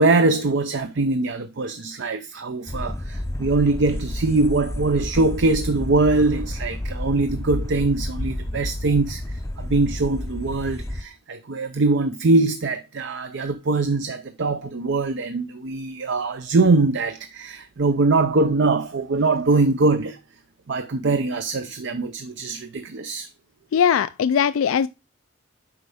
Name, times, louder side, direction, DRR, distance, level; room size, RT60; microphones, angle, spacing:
voice 1, 0.0-20.2 20.7-23.3, right 3 dB, 60° right, 0.6 m, -22 dB
sound 1, 2.7-11.0, left 1 dB, 15° left, 0.5 m, -30 dB
voice 2, 23.7-24.9, left 7 dB, 85° left, 0.3 m, -20 dB
8.0 x 5.2 x 3.4 m
head